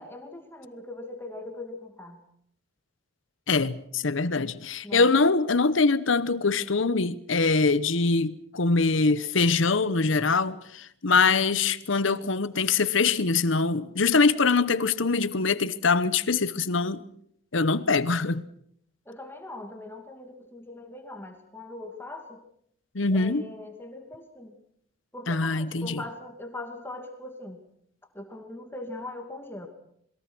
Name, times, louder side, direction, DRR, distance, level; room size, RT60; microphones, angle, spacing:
voice 1, 0.0-2.2 4.8-5.1 9.0-9.1 19.1-22.4 23.1-24.6 25.1-27.6 28.1-29.7, left 2 dB, 10° left, 2.5 m, -40 dB
voice 2, 3.5-17.0 17.5-18.5 22.9-23.4 25.3-26.0, left 4 dB, 75° left, 1.0 m, -23 dB
27.0 x 22.0 x 6.2 m
head